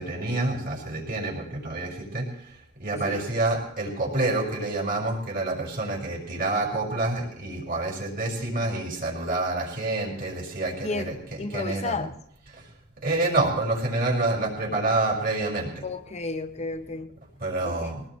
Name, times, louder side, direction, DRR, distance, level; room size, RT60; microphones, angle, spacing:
voice 1, 0.0-2.3 2.8-12.1 12.5-12.6 13.0-15.8 17.4-18.0, right 2 dB, 45° right, 5.6 m, -28 dB
voice 2, 10.8-12.2 15.8-17.2 17.6-17.9, left 3 dB, 35° left, 0.8 m, -33 dB
22.0 x 19.5 x 3.2 m
head